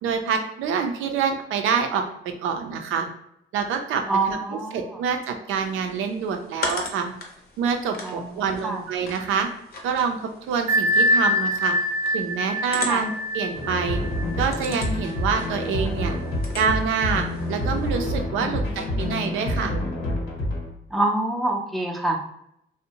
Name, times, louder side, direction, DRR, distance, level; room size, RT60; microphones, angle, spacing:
voice 1, 0.0-3.1 3.5-7.1 7.6-9.5 9.8-11.8 12.1-14.0 14.4-16.2 16.5-19.8, right 6 dB, 85° right, 5 dB, 0.4 m, -26 dB
voice 2, 4.1-4.8 8.0-8.8 12.9-13.0 18.4-19.1 20.9-22.2, right 2 dB, ahead, 1 dB, 0.4 m, -26 dB
sound 1, 5.5-18.0, left 3 dB, 50° left, 0.6 m, -39 dB
Bell, 10.7-16.1, equal, 15° right, 0.8 m, -25 dB
sound 2, 13.5-20.7, left 1 dB, 80° left, 1.0 m, -28 dB
2.6 x 2.0 x 2.8 m, 0.77 s
cardioid pair, 90°, 20 cm